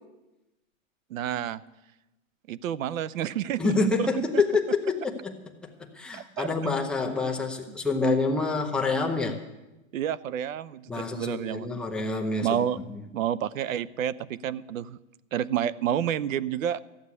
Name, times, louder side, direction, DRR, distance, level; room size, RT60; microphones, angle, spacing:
voice 1, 1.1-1.6 2.5-3.7 4.0-4.1 6.1-6.5 7.7-7.8 9.9-11.7 12.4-12.8 13.1-15.0 15.3-16.8, right 10 dB, 75° right, 18 dB, 0.8 m, -29 dB
voice 2, 3.6-5.4 5.6-9.4 10.9-12.6 12.9-13.0, left 3 dB, ahead, 0 dB, 0.6 m, -27 dB
14.5 x 7.2 x 9.6 m, 1.0 s
hypercardioid pair, 160°, 41 cm